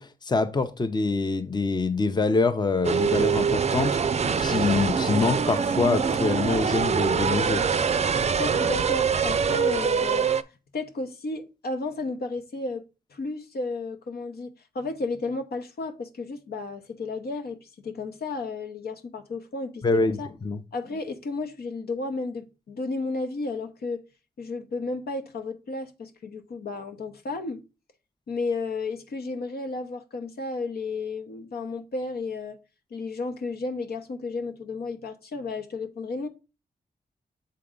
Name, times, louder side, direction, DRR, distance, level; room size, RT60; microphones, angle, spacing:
voice 1, 0.0-7.6 19.8-20.2 20.4-20.6, left 3 dB, 25° left, 0.6 m, -25 dB
sound 1, 2.8-10.4, right 6 dB, 40° right, 0.4 m, -24 dB
voice 2, 8.4-10.3 10.7-12.8 13.1-20.3 20.7-24.0 24.4-27.6 28.3-32.6 32.9-36.3, left 3 dB, 70° left, 0.9 m, -33 dB
6.9 x 3.8 x 3.7 m
cardioid pair, 60°, 17 cm